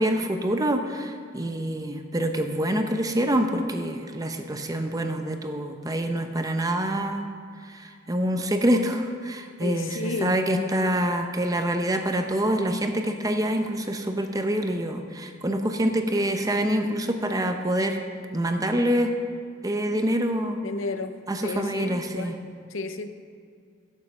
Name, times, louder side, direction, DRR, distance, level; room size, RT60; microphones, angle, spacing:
voice 1, 0.0-7.3 7.6-18.0 18.3-19.1 19.6-20.6 21.3-22.4, right 1 dB, 20° right, 6 dB, 0.7 m, -26 dB
voice 2, 9.6-10.9 20.6-21.1 21.4-22.3 22.7-23.1, left 3 dB, 75° left, 9 dB, 0.7 m, -32 dB
11.0 x 7.5 x 6.3 m, 2.2 s
head